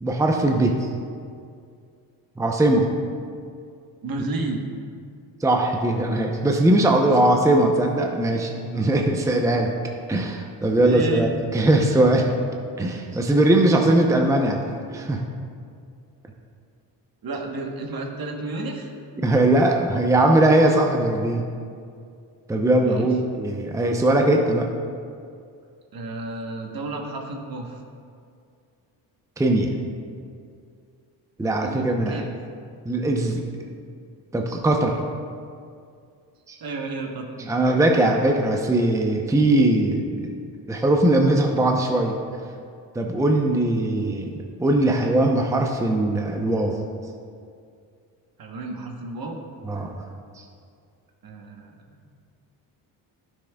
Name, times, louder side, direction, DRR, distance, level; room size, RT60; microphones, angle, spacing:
voice 1, 0.0-0.9 2.4-2.9 5.4-9.7 10.1-12.3 12.8-15.2 19.2-21.5 22.5-24.7 29.4-29.8 31.4-32.3 32.8-33.4 34.3-34.9 36.5-36.6 37.4-40.4 40.7-42.1 42.9-46.8 49.6-50.0 50.4-50.5, right 1 dB, 5° right, 2 dB, 0.7 m, -20 dB
voice 2, 4.0-4.6 10.8-11.3 17.2-18.9 22.8-23.1 25.9-27.8 31.6-32.3 36.6-37.3 48.4-49.4 51.2-52.0, right 2 dB, 55° right, 2 dB, 1.2 m, -31 dB
11.5 x 6.3 x 2.3 m, 2.3 s
supercardioid pair, 65°, 44 cm